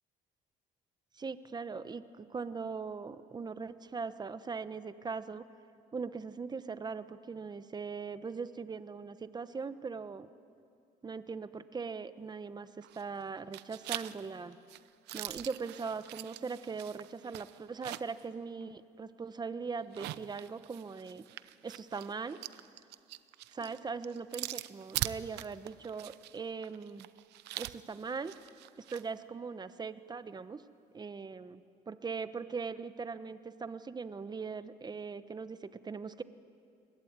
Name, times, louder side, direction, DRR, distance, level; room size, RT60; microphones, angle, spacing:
voice 1, 1.2-5.5 5.9-10.3 11.0-14.6 15.1-21.2 21.6-22.4 23.5-27.1 27.5-28.4 28.8-30.6 30.9-31.6 31.9-36.2, right 5 dB, 25° right, 12 dB, 1.1 m, -40 dB
sound 1, 12.8-13.2 13.5-18.2 18.6-18.7 19.8-29.1, right 16 dB, 85° right, 0.8 m, -43 dB
28.5 x 21.5 x 9.5 m, 2.4 s
cardioid pair, 110°, 17 cm